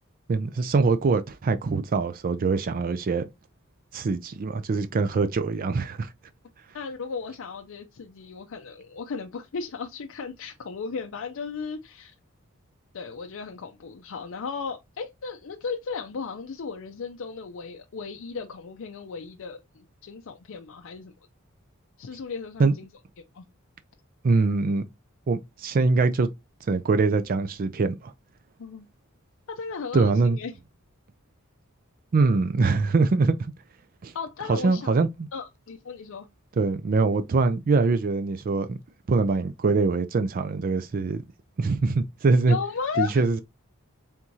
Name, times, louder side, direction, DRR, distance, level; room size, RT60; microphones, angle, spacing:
voice 1, 0.3-3.2 3.9-6.1 22.6-22.7 24.2-24.9 25.3-26.3 26.7-28.0 29.9-30.4 32.1-33.4 34.0-34.1 34.5-35.3 36.6-38.8 39.1-41.2 41.6-42.6 43.0-43.4, right 3 dB, 40° right, 0.4 m, -23 dB
voice 2, 6.7-12.1 12.9-21.1 22.0-22.9 23.3-23.5 28.6-28.9 29.5-30.6 34.1-34.9 35.3-36.3 42.5-43.3, left 5 dB, 65° left, 0.5 m, -35 dB
4.5 x 3.6 x 2.7 m
head